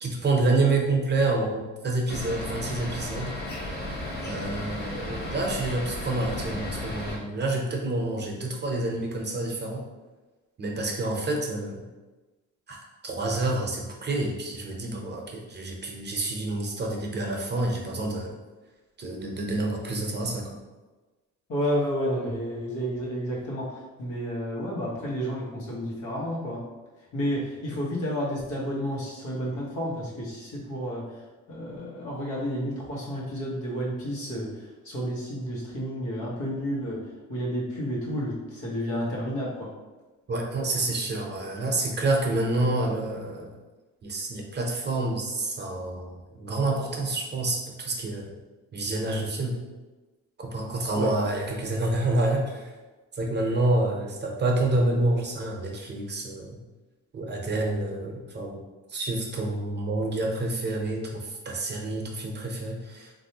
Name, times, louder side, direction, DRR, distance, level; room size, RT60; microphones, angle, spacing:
voice 1, 0.0-3.3 4.2-9.8 10.6-11.9 12.7-12.8 13.0-18.3 19.0-20.6 40.3-43.5 44.0-48.3 48.7-49.6 50.4-52.7 53.1-56.6 57.1-58.6 58.9-63.1, right 2 dB, 35° right, 0 dB, 0.7 m, -28 dB
sound 1, 2.1-7.2, left 1 dB, 35° left, 0.8 m, -34 dB
voice 2, 21.5-26.6 27.1-31.2 31.5-37.0 37.3-39.7 50.9-51.1, equal, 85° left, -5 dB, 1.2 m, -31 dB
3.3 x 2.6 x 2.8 m, 1.2 s
cardioid pair, 90°, 30 cm